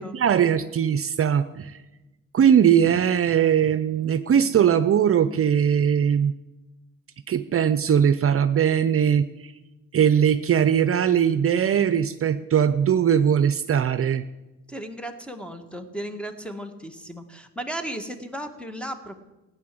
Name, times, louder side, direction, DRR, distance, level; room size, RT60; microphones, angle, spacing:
voice 1, 0.0-1.8 2.3-6.3 7.3-9.5 9.9-14.2, right 8 dB, 50° right, 12 dB, 0.7 m, -20 dB
voice 2, 14.7-19.2, right 1 dB, 5° left, 8 dB, 1.8 m, -35 dB
16.0 x 9.6 x 7.7 m, 1.1 s
cardioid pair, 90°, 30 cm